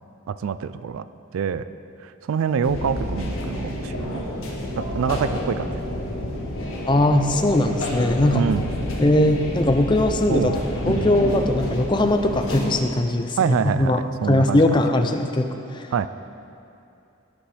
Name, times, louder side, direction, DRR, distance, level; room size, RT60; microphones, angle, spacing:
voice 1, 0.3-1.1 1.3-1.7 2.0-4.3 4.8-5.8 8.3-8.7 10.3-10.6 10.9-11.2 13.4-15.1 15.9-16.1, right 6 dB, 75° right, 14 dB, 0.3 m, -26 dB
sound 1, 2.6-12.7, left 1 dB, 75° left, 1.7 m, -29 dB
voice 2, 6.9-8.5 9.0-10.6 10.9-14.0 14.3-16.1, left 1 dB, 20° left, 6 dB, 0.5 m, -20 dB
17.0 x 8.2 x 3.4 m, 2.7 s
head